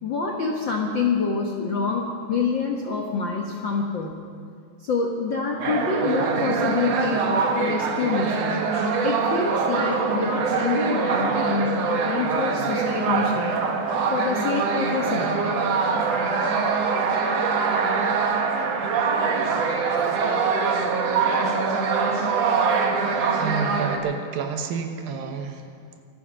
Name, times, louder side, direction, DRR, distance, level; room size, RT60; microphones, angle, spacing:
voice 1, 0.0-4.2 4.8-8.7 9.0-13.6 14.1-15.5, left 4 dB, 85° left, 0 dB, 1.0 m, -26 dB
sound 1, 5.6-24.0, right 5 dB, 60° right, 1.9 m, -23 dB
voice 2, 23.4-26.0, right 6 dB, 80° right, 5 dB, 2.9 m, -30 dB
25.5 x 8.6 x 6.2 m, 2.2 s
omnidirectional pair, 4.1 m